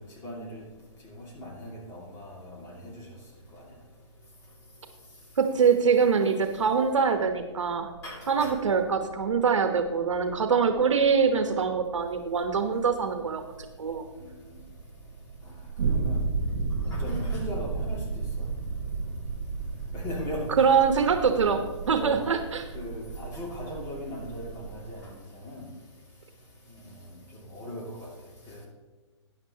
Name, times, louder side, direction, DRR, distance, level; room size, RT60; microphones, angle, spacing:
voice 1, 0.2-0.6 1.4-2.3 8.0-8.5 16.0-16.2 16.9-18.0 20.0-20.4 21.9-22.2 22.7-24.5 25.5-25.6 27.5-27.8, left 1 dB, 15° left, -2 dB, 2.3 m, -37 dB
voice 2, 5.4-7.9 8.3-13.4 13.8-14.0 20.6-22.7, right 6 dB, 80° right, 6 dB, 1.1 m, -24 dB
sound 1, 6.4-25.0, right 4 dB, 60° right, 1.9 m, -35 dB
13.0 x 10.0 x 2.9 m, 1.3 s
hypercardioid pair, 155°, 16 cm